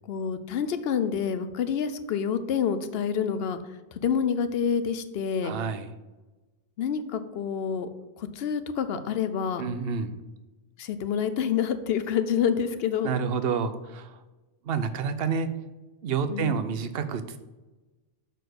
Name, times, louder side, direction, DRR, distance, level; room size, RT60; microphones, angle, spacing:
voice 1, 0.1-3.6 4.0-5.6 6.8-7.9 8.2-9.6 10.8-13.1 16.3-16.6, left 7 dB, 60° left, 11 dB, 0.8 m, -27 dB
voice 2, 5.4-6.0 9.6-10.2 13.0-14.2 14.6-15.6 16.0-17.4, right 6 dB, 60° right, 11 dB, 0.8 m, -29 dB
6.6 x 4.3 x 6.5 m, 1.1 s
omnidirectional pair, 1.2 m